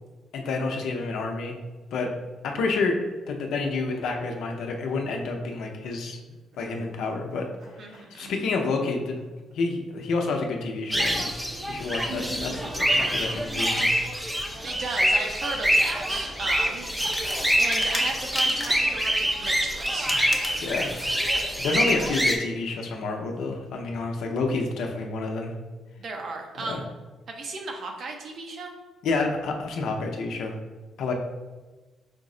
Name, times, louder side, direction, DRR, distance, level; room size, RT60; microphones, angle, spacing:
voice 1, 0.3-1.6 1.9-2.1 2.4-2.9 3.3-6.2 6.6-7.5 7.8-9.2 9.5-13.9 20.6-20.9 21.6-25.5 26.6-26.8 29.0-30.5 31.0-31.1, left 3 dB, 75° left, 2 dB, 0.6 m, -29 dB
sound 1, 6.0-8.6 8.8-9.2 9.5-9.6 10.3-10.7 11.6-14.0 14.3-14.9, right 1 dB, 75° right, 1.2 m, -42 dB
voice 2, 7.8-8.3 14.6-16.9 17.6-20.2 26.0-26.9 27.3-28.7, right 3 dB, 55° right, 2 dB, 0.7 m, -35 dB
sound 2, 10.9-22.3, equal, 10° right, 0.5 m, -25 dB
sound 3, 16.9-18.9 19.8-21.6, left 2 dB, 20° left, 0.8 m, -36 dB
5.1 x 2.0 x 3.7 m, 1.2 s
cardioid pair, 90°, 0 cm